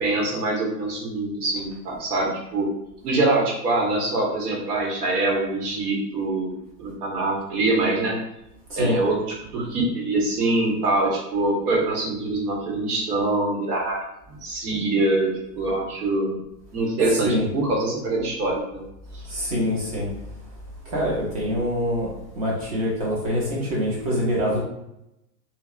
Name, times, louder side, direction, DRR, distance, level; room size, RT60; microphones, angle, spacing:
voice 1, 0.0-2.7 3.0-8.2 8.8-14.0 14.3-16.4 16.7-18.8, right 2 dB, 65° right, -1 dB, 1.1 m, -24 dB
voice 2, 17.0-17.5 19.3-20.1 20.9-22.1 22.3-24.6, equal, 25° right, -5 dB, 0.5 m, -25 dB
2.7 x 2.0 x 2.3 m, 0.85 s
supercardioid pair, 155°, 49 cm